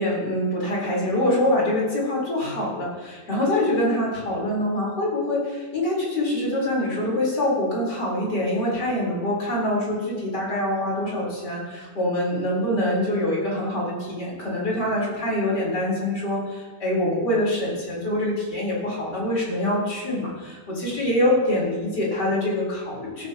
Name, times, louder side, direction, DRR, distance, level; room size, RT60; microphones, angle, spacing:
voice 1, 0.0-23.3, left 1 dB, 70° left, -4 dB, 4.9 m, -25 dB
16.5 x 14.0 x 3.0 m, 1.4 s
omnidirectional pair, 1.8 m